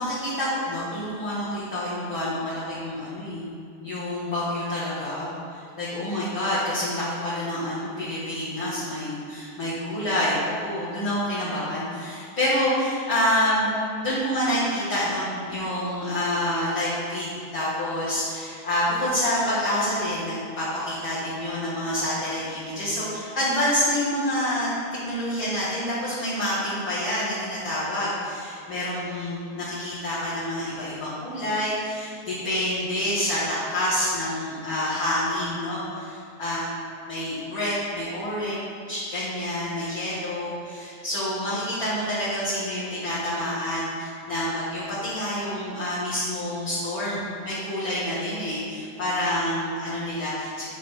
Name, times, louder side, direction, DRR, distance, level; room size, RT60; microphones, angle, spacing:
voice 1, 0.0-13.7 14.0-24.7 25.0-36.8 37.1-38.6 38.9-50.6, left 1 dB, 50° left, -10 dB, 1.8 m, -27 dB
10.0 x 3.7 x 5.5 m, 2.4 s
omnidirectional pair, 3.7 m